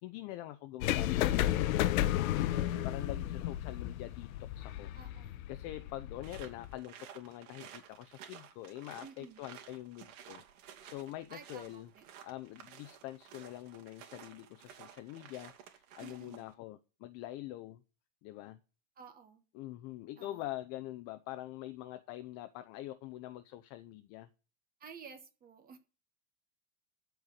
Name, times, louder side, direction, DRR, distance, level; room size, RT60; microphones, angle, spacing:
voice 1, 0.0-10.4 10.8-11.9 12.2-17.8 18.2-18.6 19.5-24.3, left 15 dB, 35° left, 0.7 m, -45 dB
sound 1, 0.8-6.7, left 13 dB, 70° left, 0.9 m, -33 dB
voice 2, 2.5-3.2 4.9-5.4 9.0-9.4 11.3-12.0 16.0-16.5 19.0-19.4 20.2-20.4 24.8-25.8, right 6 dB, 20° right, 1.2 m, -52 dB
sound 2, 6.2-16.5, right 9 dB, 65° right, 2.5 m, -54 dB
14.0 x 4.7 x 8.1 m
supercardioid pair, 160°, 43 cm